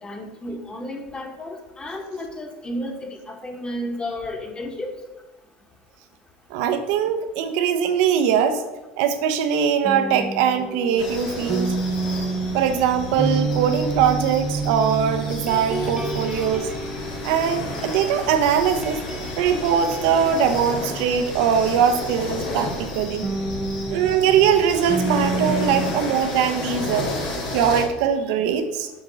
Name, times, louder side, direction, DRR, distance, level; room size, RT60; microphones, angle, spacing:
voice 1, 0.0-4.9, left 1 dB, 20° left, 3 dB, 1.6 m, -32 dB
voice 2, 6.5-8.6 9.0-11.8 12.5-16.7 17.2-19.0 19.4-23.3 23.9-27.1 27.5-28.9, right 8 dB, 70° right, 8 dB, 0.8 m, -21 dB
sound 1, 9.8-18.3 18.6-22.1 23.2-25.9, right 3 dB, 20° right, 0.9 m, -29 dB
sound 2, 11.0-27.8, left 2 dB, 75° left, 2.2 m, -32 dB
7.1 x 3.7 x 6.2 m, 1.1 s
hypercardioid pair, 90°, 5 cm